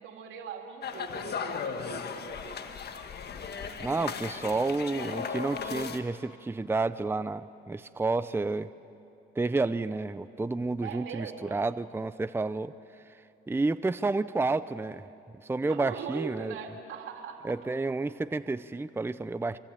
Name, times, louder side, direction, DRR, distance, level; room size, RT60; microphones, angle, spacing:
voice 1, 0.0-2.7 10.8-11.7 15.6-17.5, right 7 dB, 80° right, 3 dB, 3.1 m, -41 dB
sound 1, 0.8-6.0, left 6 dB, 55° left, 1.7 m, -36 dB
voice 2, 3.8-8.7 9.4-12.7 13.5-15.1 15.4-16.5 17.4-19.6, right 3 dB, 10° right, 13 dB, 0.6 m, -30 dB
26.0 x 25.0 x 8.9 m, 2.8 s
cardioid pair, 90°, 20 cm